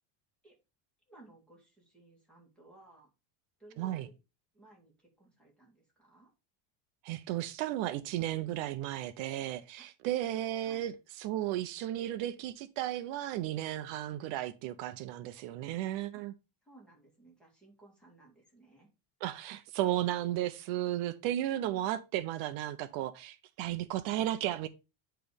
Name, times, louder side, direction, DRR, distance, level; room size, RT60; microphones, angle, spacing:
voice 1, 1.1-3.1 3.6-4.2 4.5-6.3 9.8-9.9 10.6-10.9 16.1-16.2 16.6-18.9, right 2 dB, ahead, 2.5 m, -58 dB
voice 2, 3.8-4.1 7.0-16.3 19.2-24.7, right 13 dB, 70° right, 0.7 m, -34 dB
10.0 x 3.4 x 5.1 m
cardioid pair, 175°, 48 cm